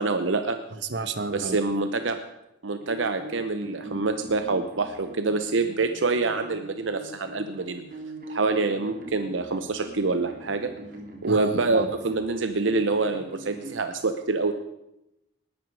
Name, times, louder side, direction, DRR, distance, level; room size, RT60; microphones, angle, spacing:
voice 1, 0.0-0.6 1.3-2.2 2.6-7.8 8.3-10.7 11.2-14.5, right 3 dB, 80° right, 8 dB, 0.9 m, -26 dB
voice 2, 0.7-1.6 11.3-11.9, right 3 dB, 60° right, 10 dB, 1.2 m, -31 dB
sound 1, 2.8-13.7, right 1 dB, 45° right, 2.5 m, -42 dB
19.5 x 11.5 x 4.8 m, 0.88 s
head